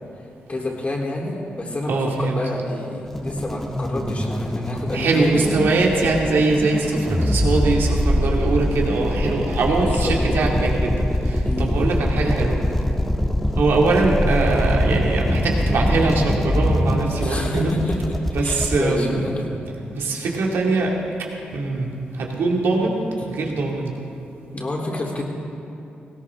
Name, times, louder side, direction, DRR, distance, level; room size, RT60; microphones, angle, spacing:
voice 1, 0.5-5.5 9.7-10.2 11.4-11.8 17.2-18.2 18.4-19.5 24.5-25.2, left 1 dB, 35° left, -1 dB, 3.5 m, -28 dB
voice 2, 1.9-2.4 4.9-12.6 13.5-17.7 18.3-19.2 19.9-24.0, right 3 dB, 80° right, -1 dB, 2.4 m, -22 dB
sound 1, 3.1-18.8, left 1 dB, 10° left, 1.5 m, -23 dB
18.5 x 17.0 x 3.7 m, 2.7 s
cardioid pair, 60°, 4 cm